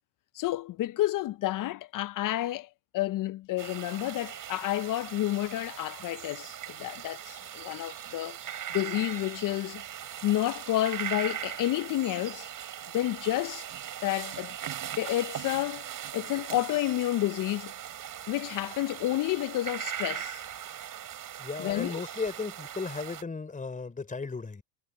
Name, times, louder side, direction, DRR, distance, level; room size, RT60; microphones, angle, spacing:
voice 1, 0.3-8.4 8.7-9.8 10.2-12.5 12.9-13.7 14.0-14.6 15.0-17.7 18.3-20.4 21.6-22.0, left 15 dB, 40° left, 0.7 m, -30 dB
sound 1, 3.6-23.2, right 10 dB, 40° right, 3.4 m, -40 dB
voice 2, 21.4-24.6, left 4 dB, 15° left, 3.9 m, -35 dB
supercardioid pair, 95°, 47 cm